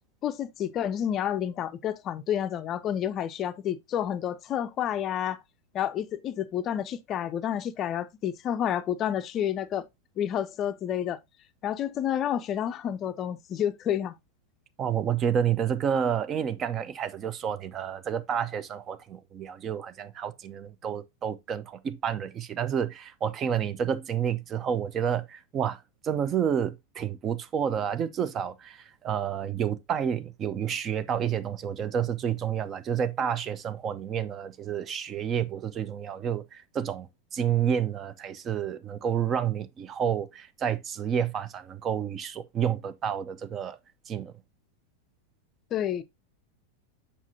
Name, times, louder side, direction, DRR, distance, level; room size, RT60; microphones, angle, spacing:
voice 1, 0.2-5.4 5.7-9.8 10.2-11.2 11.6-14.1 45.7-46.0, left 10 dB, 30° left, 0.5 m, -29 dB
voice 2, 14.8-37.1 37.3-43.8 44.1-44.3, right 8 dB, 30° right, 0.6 m, -29 dB
7.2 x 5.6 x 2.7 m
figure-of-eight pair, 90°, 0 cm